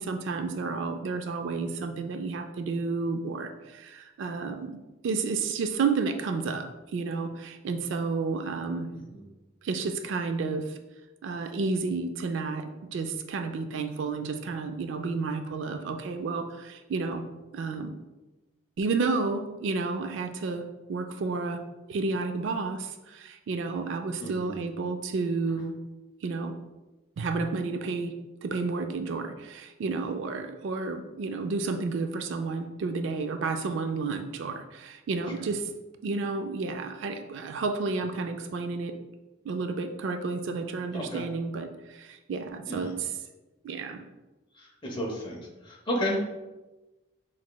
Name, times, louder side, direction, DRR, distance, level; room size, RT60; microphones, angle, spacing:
voice 1, 0.0-8.9 9.6-10.8 11.2-17.2 17.5-18.0 18.8-21.6 21.9-25.8 26.2-26.5 27.2-28.1 28.4-35.7 36.0-39.0 39.4-43.1 43.6-44.0, right 4 dB, 70° right, 6 dB, 0.3 m, -31 dB
voice 2, 24.2-24.5 40.9-41.2 42.6-42.9 44.6-45.4 45.6-46.2, equal, 25° left, -1 dB, 0.9 m, -32 dB
5.8 x 3.1 x 2.2 m, 1.1 s
head